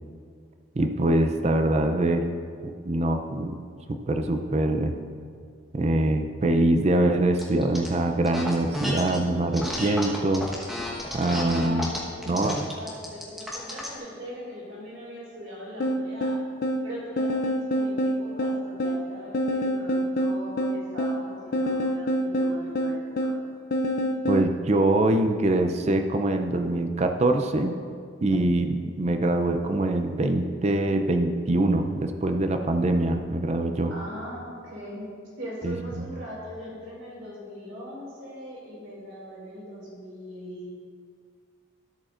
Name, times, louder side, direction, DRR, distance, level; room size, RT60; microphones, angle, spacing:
voice 1, 0.8-2.3 2.6-3.6 3.9-5.0 5.7-10.5 11.1-11.9 12.3-12.6 24.3-27.7 28.2-33.9 35.6-36.1, right 1 dB, 35° right, 6 dB, 0.4 m, -24 dB
sound 1, 7.4-7.9 8.2-9.2 9.5-14.0, left 1 dB, ahead, 1.2 m, -33 dB
voice 2, 11.5-16.4 16.8-23.4 33.9-40.7, equal, 75° right, -5 dB, 2.5 m, -40 dB
sound 2, 15.8-24.5, equal, 50° left, 0.4 m, -27 dB
13.5 x 8.4 x 2.5 m, 2.1 s
head